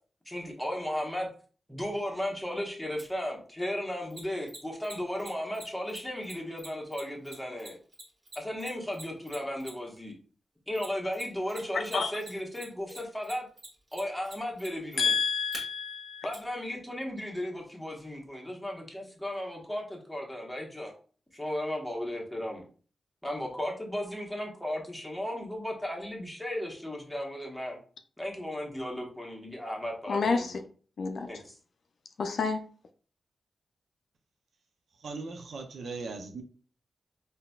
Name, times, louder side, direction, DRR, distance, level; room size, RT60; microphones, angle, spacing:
voice 1, 0.2-1.3 1.7-7.8 8.3-10.1 10.7-13.5 13.9-15.1 16.2-20.9 21.3-22.6 23.2-27.8 28.2-30.6 31.2-31.6, left 1 dB, 5° left, 1.1 m, -35 dB
Mechanisms, 3.0-3.1 4.1-10.0 10.8-11.6 11.8-15.6 16.3-16.4, right 1 dB, 45° right, 1.5 m, -45 dB
voice 2, 15.0-16.3 30.1-30.5 31.0-31.3 32.2-32.6, left 5 dB, 75° left, 0.4 m, -28 dB
voice 3, 35.0-36.4, right 3 dB, 80° right, 0.5 m, -38 dB
3.8 x 2.7 x 2.3 m
cardioid pair, 70°, 0 cm